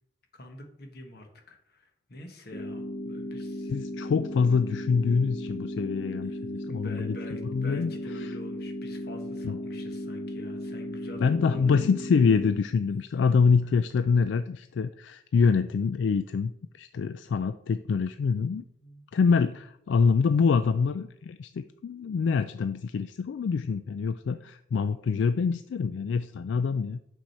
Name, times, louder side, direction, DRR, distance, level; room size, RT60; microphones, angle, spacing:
voice 1, 0.3-3.7 6.2-11.9 13.1-13.2 13.6-13.7 18.8-19.6 24.4-24.5, left 1 dB, 60° left, 4 dB, 1.3 m, -46 dB
sound 1, 2.5-12.5, left 1 dB, 30° left, 0.8 m, -36 dB
voice 2, 3.7-7.2 7.5-7.9 9.4-9.6 11.2-18.6 19.1-27.0, left 5 dB, 80° left, 11 dB, 0.3 m, -25 dB
6.2 x 6.1 x 4.3 m, 0.78 s
head